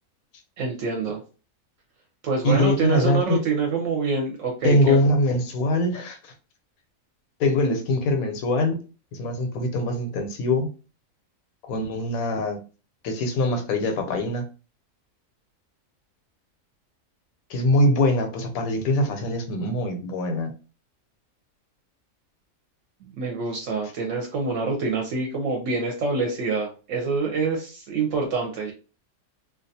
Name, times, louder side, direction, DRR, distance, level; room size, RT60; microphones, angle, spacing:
voice 1, 0.6-1.2 2.2-5.0 23.0-28.7, right 4 dB, 70° right, 1 dB, 0.9 m, -26 dB
voice 2, 2.4-3.4 4.6-6.3 7.4-8.8 9.1-10.7 11.6-12.6 13.0-14.5 17.5-20.5, left 1 dB, 85° left, 6 dB, 1.1 m, -23 dB
2.4 x 2.2 x 2.6 m, 0.34 s
omnidirectional pair, 1.4 m